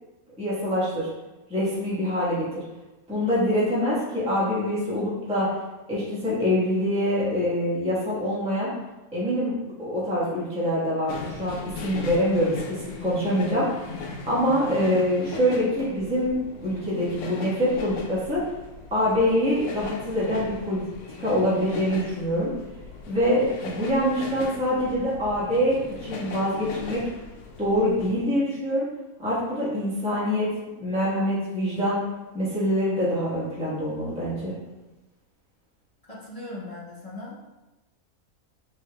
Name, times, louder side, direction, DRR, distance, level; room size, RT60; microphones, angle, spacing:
voice 1, 0.4-1.1 1.5-2.6 3.1-5.5 5.9-8.7 9.1-11.6 11.8-13.7 14.2-18.4 18.9-20.8 21.2-22.5 23.1-27.0 27.6-28.8 29.2-30.5 30.8-32.0 32.3-34.5, equal, 5° right, -9 dB, 1.2 m, -25 dB
sound 1, 11.1-28.2, left 3 dB, 65° left, 0.8 m, -38 dB
voice 2, 36.1-37.4, left 2 dB, 35° left, -7 dB, 0.6 m, -38 dB
5.7 x 3.3 x 2.3 m, 1.1 s
omnidirectional pair, 1.6 m